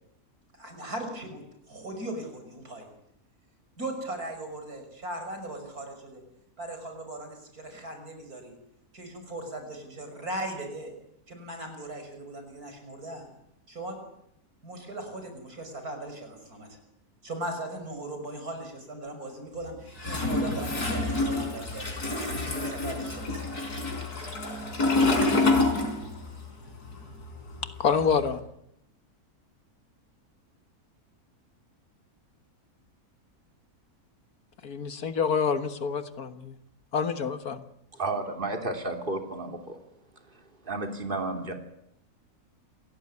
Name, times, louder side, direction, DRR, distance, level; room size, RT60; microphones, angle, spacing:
voice 1, 0.5-1.4 1.7-2.9 3.8-6.2 6.6-8.5 8.9-10.9 11.3-13.3 13.7-14.0 14.6-16.7 17.2-23.6, right 1 dB, 70° right, 5 dB, 6.4 m, -38 dB
Toilet flush, 20.0-26.4 26.7-28.3, left 2 dB, 90° left, 5.4 m, -27 dB
voice 2, 27.8-28.4 34.6-36.6 36.9-37.6, left 6 dB, 75° left, 10 dB, 2.0 m, -27 dB
voice 3, 37.9-39.8 40.3-41.5, right 2 dB, 35° right, 5 dB, 3.2 m, -32 dB
28.0 x 17.5 x 9.7 m, 0.79 s
omnidirectional pair, 1.6 m